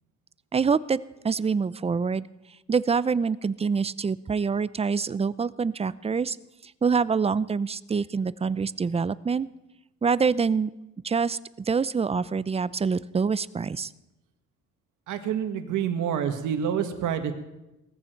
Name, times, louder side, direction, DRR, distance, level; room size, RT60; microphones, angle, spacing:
voice 1, 0.5-1.0 1.2-2.3 2.7-6.4 6.6-9.5 10.0-10.7 11.0-11.4 11.7-13.9, right 5 dB, 20° right, 18 dB, 0.5 m, -25 dB
voice 2, 15.1-17.3, right 8 dB, 85° right, 7 dB, 1.8 m, -27 dB
19.0 x 14.5 x 4.6 m, 0.98 s
cardioid pair, 90°, 30 cm